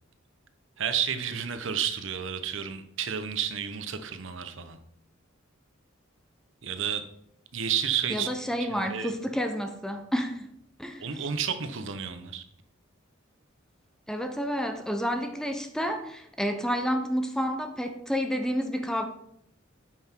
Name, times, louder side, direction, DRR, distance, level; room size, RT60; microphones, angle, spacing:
voice 1, 0.8-4.8 6.6-7.0 7.5-8.3 8.6-9.1 11.0-12.4, right 8 dB, 65° right, 0.9 m, -31 dB
voice 2, 8.1-10.5 10.8-11.2 14.1-19.0, equal, 5° left, 0.7 m, -30 dB
9.0 x 5.9 x 4.5 m
head